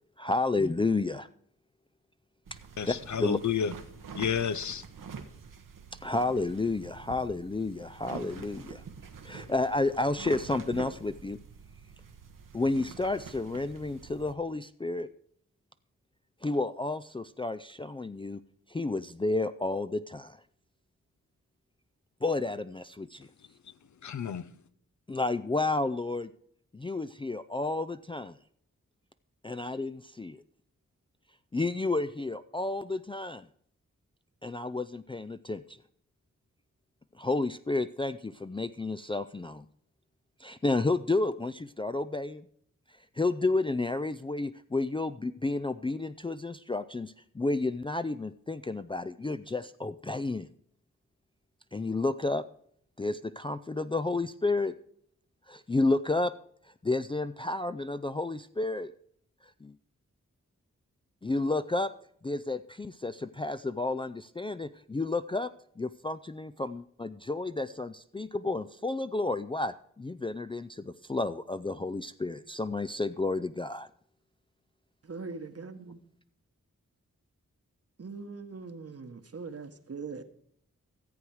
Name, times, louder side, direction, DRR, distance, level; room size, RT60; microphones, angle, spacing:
voice 1, 0.2-1.3 2.9-3.4 6.0-8.8 9.2-11.4 12.5-15.1 16.4-18.4 18.7-20.4 22.2-23.3 25.1-26.3 26.7-28.4 29.4-30.4 31.5-33.5 34.4-35.8 37.2-39.7 40.4-42.5 43.2-50.5 51.7-52.4 53.0-54.7 55.5-56.3 56.8-58.9 59.6-59.7 61.2-61.9 62.2-73.9, left 2 dB, 15° left, 0.4 m, -31 dB
sound 1, 2.5-14.3, right 5 dB, 80° right, 1.1 m, -46 dB
voice 2, 2.8-3.7 4.2-4.8 24.0-24.4, left 7 dB, 60° left, 0.6 m, -30 dB
voice 3, 75.0-76.0 78.0-80.2, right 4 dB, 50° right, 1.1 m, -41 dB
14.5 x 7.7 x 4.7 m
cardioid pair, 45°, 32 cm